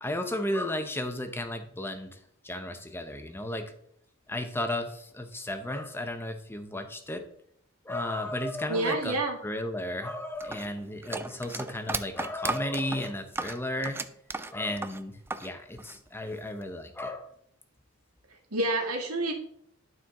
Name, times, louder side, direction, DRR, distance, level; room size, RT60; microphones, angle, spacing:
voice 1, 0.0-2.2 2.4-3.7 4.3-7.2 7.8-9.2 9.4-14.0 14.5-15.1 15.4-17.3, left 1 dB, 10° left, 7 dB, 0.8 m, -34 dB
voice 2, 8.7-9.4 18.5-19.3, right 2 dB, 90° right, 2 dB, 1.7 m, -28 dB
sound 1, 10.4-15.5 15.8-16.6, right 3 dB, 10° right, 0.3 m, -35 dB
11.5 x 4.5 x 3.7 m, 0.67 s
head